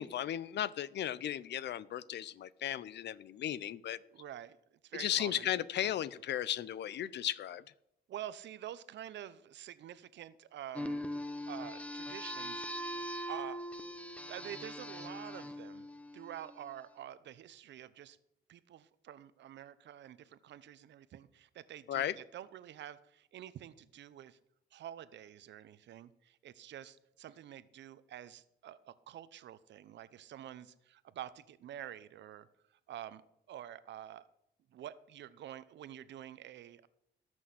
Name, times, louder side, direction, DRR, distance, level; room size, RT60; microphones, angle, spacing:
voice 1, 0.0-4.0 4.9-7.6 21.9-22.2, left 11 dB, 70° left, 19 dB, 0.7 m, -35 dB
voice 2, 4.1-4.6 4.8-5.5 5.8-5.9 8.1-11.0 11.5-13.0 13.3-13.6 14.3-15.9 16.1-18.2 18.5-24.4 24.7-32.5 32.9-33.2 33.5-34.3 34.7-36.9, right 11 dB, 80° right, 15 dB, 0.8 m, -48 dB
sound 1, 10.7-16.8, equal, 5° left, 1.1 m, -41 dB
18.5 x 6.3 x 7.8 m, 0.79 s
cardioid pair, 95°, 18 cm